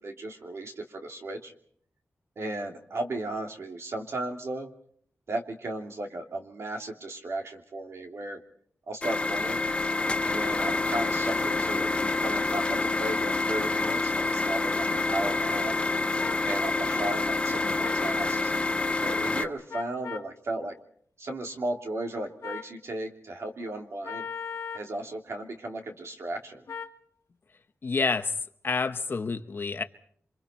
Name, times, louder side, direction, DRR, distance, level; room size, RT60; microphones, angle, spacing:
voice 1, 0.0-1.5 2.4-4.7 5.3-8.4 8.9-9.6 10.2-15.8 16.4-18.5 19.0-20.7 21.2-24.3 24.7-26.6, right 2 dB, 60° right, 2 dB, 3.0 m, -35 dB
sound 1, 9.0-19.5, left 3 dB, 20° left, 0.9 m, -27 dB
sound 2, 13.8-14.0 15.2-15.4 16.2-16.4 17.8-18.1 19.7-20.3 22.4-22.7 24.0-24.9 26.7-27.0, left 6 dB, 75° left, 1.4 m, -38 dB
voice 2, 27.8-28.3 28.6-29.8, left 4 dB, 45° left, 9 dB, 1.0 m, -28 dB
28.0 x 25.5 x 4.5 m, 0.62 s
wide cardioid pair, 170°, 5 cm